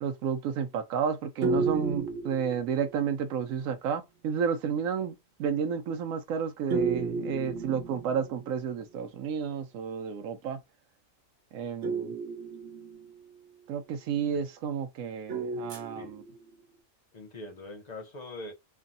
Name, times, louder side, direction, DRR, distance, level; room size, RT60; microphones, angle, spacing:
voice 1, 0.0-10.6 11.5-12.1 13.7-16.2, right 7 dB, 80° right, 1.0 m, -31 dB
sound 1, 1.4-3.1 6.7-8.5 11.8-13.4 15.3-16.5, right 4 dB, 60° right, 1.1 m, -33 dB
voice 2, 17.1-18.5, left 2 dB, 40° left, 0.7 m, -42 dB
3.3 x 2.3 x 2.6 m
omnidirectional pair, 1.4 m